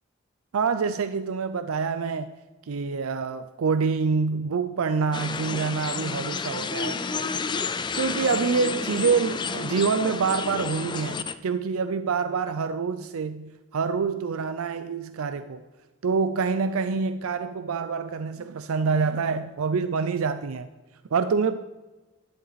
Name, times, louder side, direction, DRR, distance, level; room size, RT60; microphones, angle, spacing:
voice 1, 0.5-2.3 2.7-7.0 8.0-15.6 16.0-20.7 21.1-21.6, right 5 dB, 90° right, 0.5 m, -26 dB
sound 1, 5.1-11.3, left 5 dB, 20° left, 0.3 m, -30 dB
11.0 x 10.5 x 4.1 m
head